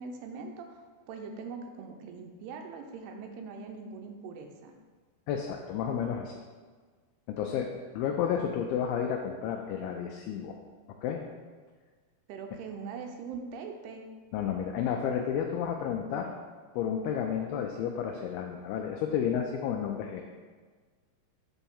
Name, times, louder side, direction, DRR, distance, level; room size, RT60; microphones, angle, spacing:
voice 1, 0.0-4.7 12.3-14.0, right 5 dB, 85° right, 4 dB, 2.7 m, -42 dB
voice 2, 5.3-6.4 7.3-7.7 7.9-10.6 11.0-11.3 14.3-16.3 16.7-20.2, left 8 dB, 80° left, 2 dB, 2.4 m, -31 dB
7.0 x 4.3 x 5.4 m, 1.5 s
omnidirectional pair, 4.6 m